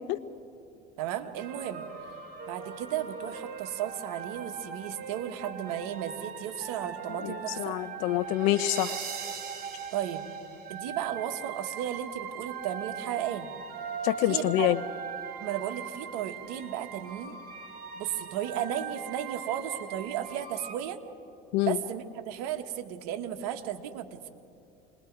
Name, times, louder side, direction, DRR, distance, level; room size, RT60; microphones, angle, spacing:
voice 1, 1.0-1.9 2.5-7.7 9.9-10.3 10.7-13.5 14.3-14.8 15.4-17.4 17.9-21.0 21.6-24.3, right 10 dB, 80° right, 6 dB, 1.6 m, -34 dB
sound 1, 1.4-20.7, right 6 dB, 50° right, 3.5 m, -40 dB
voice 2, 7.2-9.0 14.0-14.8 21.5-21.8, left 15 dB, 75° left, 14 dB, 0.6 m, -26 dB
28.0 x 21.5 x 4.8 m, 2.6 s
supercardioid pair, 95°, 20 cm